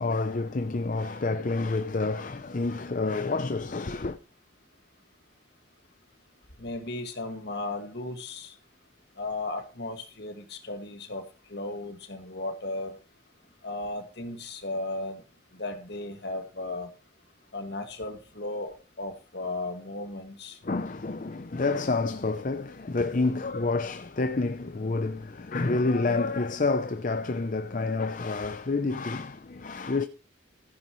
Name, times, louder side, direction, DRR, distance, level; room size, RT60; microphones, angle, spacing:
voice 1, 0.0-4.2 20.6-30.1, left 3 dB, 45° left, 0.6 m, -28 dB
voice 2, 6.6-8.5 9.2-11.2 11.5-13.0 13.6-15.2 15.6-16.9 17.5-20.6, left 2 dB, 60° left, 2.0 m, -35 dB
15.0 x 9.4 x 3.1 m
head